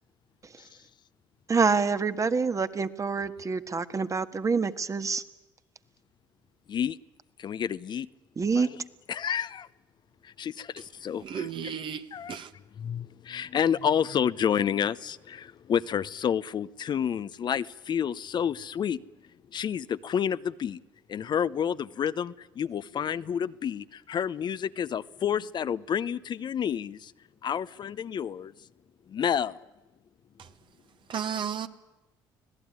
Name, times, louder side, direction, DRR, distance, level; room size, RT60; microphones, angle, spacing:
voice 1, 1.5-5.2 8.4-8.7, right 5 dB, 35° right, 1.5 m, -26 dB
voice 2, 7.4-8.1 8.5-8.8 9.1-9.7 10.2-11.5 12.1-12.4 12.8-19.0 19.5-20.8 21.1-27.1 27.4-28.5 29.1-29.6, left 8 dB, 50° left, 0.8 m, -29 dB
voice 3, 11.2-12.5 30.4-30.5 31.1-31.7, right 8 dB, 55° right, 1.6 m, -34 dB
25.5 x 17.0 x 9.7 m
hypercardioid pair, 60°, 10 cm